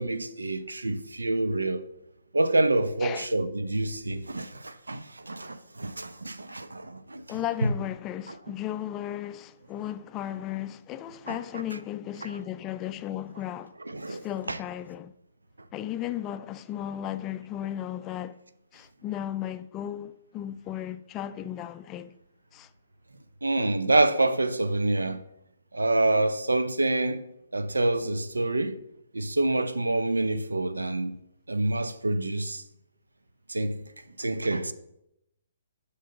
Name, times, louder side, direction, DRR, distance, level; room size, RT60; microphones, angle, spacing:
voice 1, 0.0-1.9 2.3-7.2 7.6-7.7 11.3-11.4 12.2-12.3 13.9-14.6 23.4-25.2 25.7-27.2 27.5-28.8 29.1-31.2 31.5-32.6 33.5-33.8 34.2-34.7, right 2 dB, 85° right, 0.6 m, -27 dB
voice 2, 7.3-13.8 14.1-15.1 15.7-18.4 18.7-22.1 22.5-22.7, left 11 dB, 25° left, 0.4 m, -35 dB
7.5 x 5.4 x 5.3 m
figure-of-eight pair, 130°, 0 cm